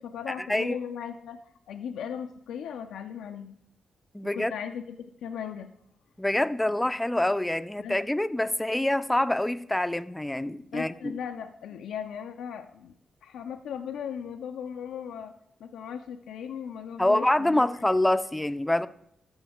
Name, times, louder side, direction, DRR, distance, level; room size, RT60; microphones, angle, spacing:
voice 1, 0.0-1.4 1.7-3.6 4.2-5.7 7.8-8.0 10.7-12.9 13.2-15.3 15.6-17.8, left 8 dB, 75° left, 6 dB, 0.4 m, -37 dB
voice 2, 4.1-4.5 6.2-11.1 17.0-18.9, left 1 dB, 10° left, 13 dB, 0.5 m, -26 dB
13.0 x 4.5 x 3.5 m, 0.75 s
hypercardioid pair, 45°, 0 cm